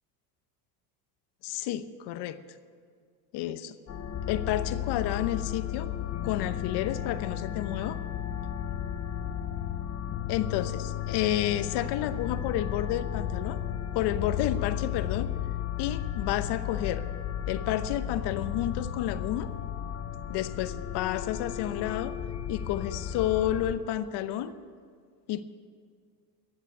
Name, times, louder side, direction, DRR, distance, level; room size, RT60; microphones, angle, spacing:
voice 1, 1.4-2.4 3.3-3.8 4.3-5.9 6.2-8.0 10.3-13.6 13.9-15.3 15.8-17.0 17.5-19.5 20.3-22.2 22.5-24.5 25.3-25.4, left 12 dB, 65° left, 12 dB, 0.9 m, -30 dB
sound 1, 3.9-23.8, left 10 dB, 35° left, 0.9 m, -34 dB
14.5 x 8.2 x 8.5 m, 2.1 s
supercardioid pair, 85°, 44 cm